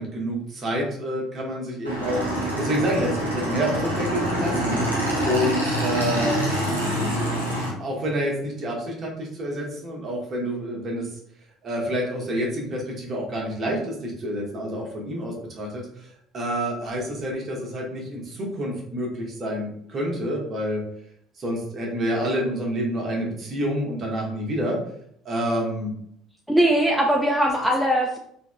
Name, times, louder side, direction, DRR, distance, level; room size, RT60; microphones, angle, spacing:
voice 1, 0.0-4.8 5.3-6.4 7.8-11.1 11.6-16.1 16.3-20.8 21.4-24.8 25.2-25.9, equal, 40° right, -1 dB, 1.2 m, -28 dB
Motorcycle / Engine, 1.8-7.7, right 1 dB, 85° right, 0.8 m, -25 dB
voice 2, 26.5-28.2, right 1 dB, ahead, -1 dB, 0.5 m, -20 dB
3.6 x 2.7 x 2.2 m, 0.68 s
figure-of-eight pair, 55°, 0 cm